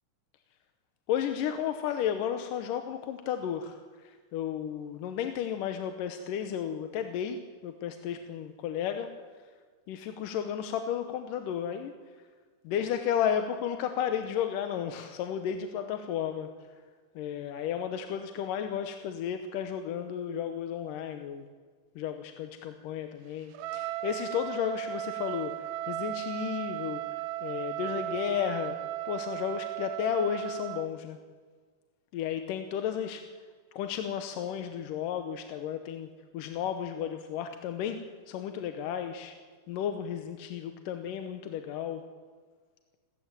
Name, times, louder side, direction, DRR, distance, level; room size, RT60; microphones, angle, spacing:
voice 1, 1.1-9.1 9.9-11.9 12.6-16.5 17.2-21.5 22.0-28.8 29.1-31.2 32.1-33.3 33.7-39.3 39.7-42.0, left 9 dB, 80° left, 7 dB, 2.6 m, -33 dB
Trumpet, 23.5-30.9, right 14 dB, 80° right, 2.4 m, -36 dB
29.5 x 14.0 x 9.0 m, 1.5 s
omnidirectional pair, 3.8 m